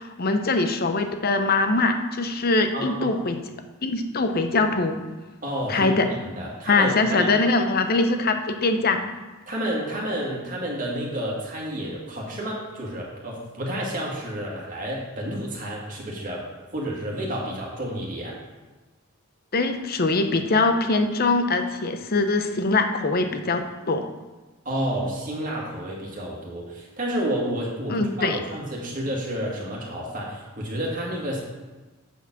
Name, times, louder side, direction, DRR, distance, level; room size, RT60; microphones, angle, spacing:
voice 1, 0.0-3.4 3.8-5.0 5.7-6.1 6.7-9.1 19.5-23.6 23.9-24.0 27.9-28.4, left 3 dB, 50° left, 7 dB, 0.7 m, -22 dB
voice 2, 2.7-3.1 5.4-7.3 9.5-16.5 16.7-18.4 24.7-31.4, right 1 dB, 40° right, -3 dB, 2.1 m, -30 dB
8.3 x 4.6 x 6.1 m, 1.2 s
head